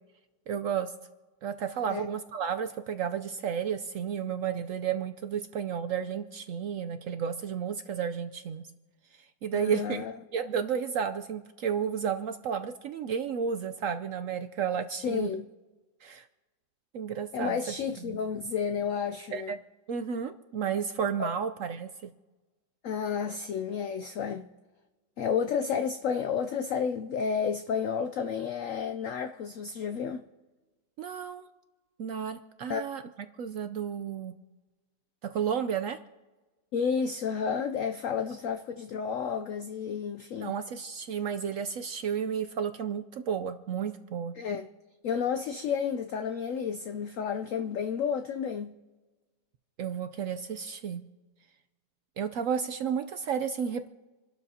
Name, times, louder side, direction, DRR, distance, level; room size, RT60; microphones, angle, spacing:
voice 1, 0.5-0.9 1.4-8.6 9.4-10.1 10.3-15.3 16.0-16.2 16.9-17.7 18.0-18.2 19.3-19.6 19.9-22.1 31.0-31.5 32.0-33.0 33.4-34.3 35.2-36.0 40.4-44.3 49.8-51.0 52.2-53.9, right 7 dB, 80° right, 0.7 m, -32 dB
voice 2, 9.5-10.1 15.0-15.5 17.3-19.6 21.2-21.3 22.8-24.5 25.2-30.2 32.7-32.8 36.7-40.5 44.4-44.7 45.0-48.7, left 6 dB, 85° left, 0.7 m, -31 dB
28.0 x 12.0 x 2.8 m
omnidirectional pair, 2.0 m